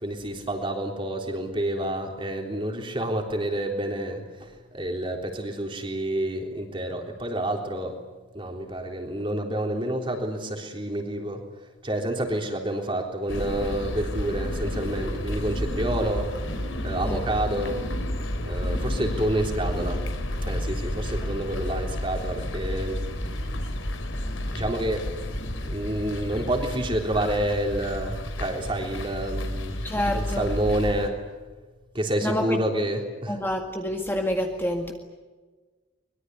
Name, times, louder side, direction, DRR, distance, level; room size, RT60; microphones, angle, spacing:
voice 1, 0.0-4.5 4.7-8.0 8.3-11.4 11.8-16.3 16.8-17.8 18.5-20.0 20.4-23.1 24.5-25.1 25.6-29.8 30.1-31.1 31.9-33.4, right 1 dB, 25° right, 3 dB, 3.7 m, -28 dB
sound 1, 13.3-31.1, left 1 dB, 80° left, 3.9 m, -31 dB
voice 2, 29.8-30.5 32.2-32.6 33.3-34.9, left 1 dB, 10° left, 2 dB, 1.9 m, -28 dB
24.0 x 22.5 x 9.7 m, 1.3 s
head